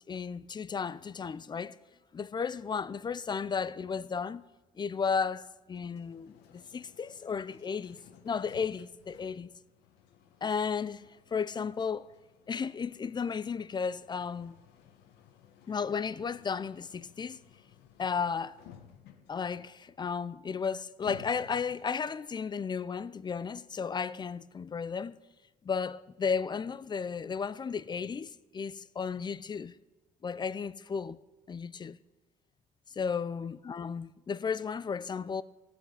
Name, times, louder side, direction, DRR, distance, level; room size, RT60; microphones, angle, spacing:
voice 1, 0.1-1.8 2.1-4.4 4.8-8.0 8.2-9.5 10.4-11.0 11.3-12.1 12.5-14.5 15.7-17.4 18.0-18.6 19.3-25.2 25.6-29.7 30.2-31.2 31.5-32.0 33.0-35.4, left 6 dB, 25° left, 0.5 m, -34 dB
sound 1, 5.7-22.1, left 9 dB, 90° left, 1.3 m, -57 dB
15.0 x 6.4 x 9.2 m
cardioid pair, 110°, 17 cm